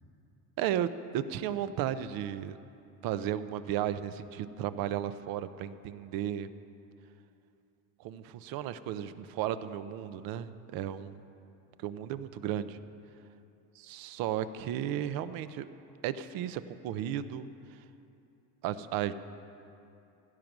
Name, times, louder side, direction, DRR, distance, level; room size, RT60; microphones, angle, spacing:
voice 1, 0.6-2.6 3.0-6.5 8.0-11.3 11.8-12.8 13.8-15.7 16.0-17.5 18.6-19.1, right 11 dB, 60° right, 13 dB, 0.8 m, -34 dB
16.0 x 13.0 x 6.1 m, 2.7 s
supercardioid pair, 125°, 40 cm